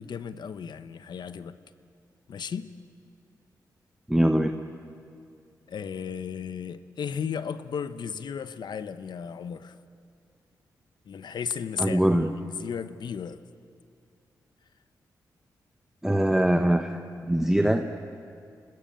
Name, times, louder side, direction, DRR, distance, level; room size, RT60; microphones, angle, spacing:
voice 1, 0.0-1.6 2.3-2.7 5.7-9.8 11.1-13.4, left 7 dB, 70° left, 12 dB, 1.0 m, -35 dB
voice 2, 4.1-4.5 11.8-12.3 16.0-17.8, right 1 dB, 5° right, 5 dB, 1.3 m, -23 dB
28.0 x 19.5 x 8.8 m, 2.3 s
cardioid pair, 60°, 8 cm